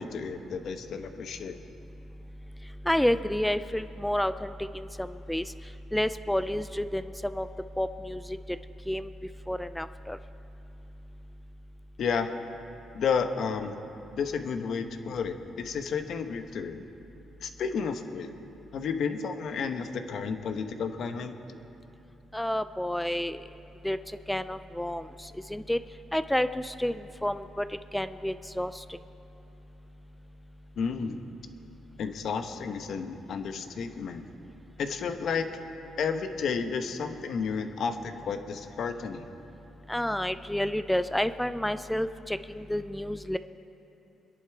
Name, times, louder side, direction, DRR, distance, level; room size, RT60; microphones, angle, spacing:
voice 1, 0.0-1.6 12.0-12.3 12.9-13.8 14.2-16.8 17.4-18.3 18.7-21.3 30.7-31.2 32.0-34.2 34.8-35.5 36.0-39.3, left 6 dB, 65° left, 7 dB, 1.0 m, -32 dB
voice 2, 2.9-5.4 5.9-7.5 7.8-8.4 8.9-9.1 9.5-10.2 22.3-23.4 23.8-24.0 24.3-25.0 25.5-25.8 26.1-27.7 27.9-28.7 39.9-43.4, left 1 dB, 5° left, 12 dB, 0.4 m, -29 dB
24.0 x 10.5 x 4.7 m, 2.9 s
cardioid pair, 90°, 0 cm